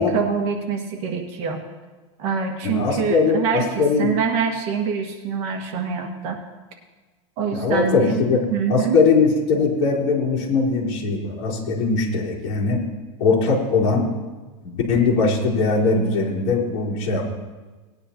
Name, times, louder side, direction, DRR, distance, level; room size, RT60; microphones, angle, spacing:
voice 1, 0.0-1.6 2.2-6.4 7.4-8.2 8.5-9.0, right 6 dB, 40° right, 2 dB, 1.6 m, -25 dB
voice 2, 2.6-4.1 7.5-8.4 8.7-12.8 13.2-14.0 14.6-17.2, left 4 dB, 50° left, -6 dB, 4.0 m, -20 dB
19.0 x 9.8 x 3.0 m, 1.3 s
supercardioid pair, 165°, 16 cm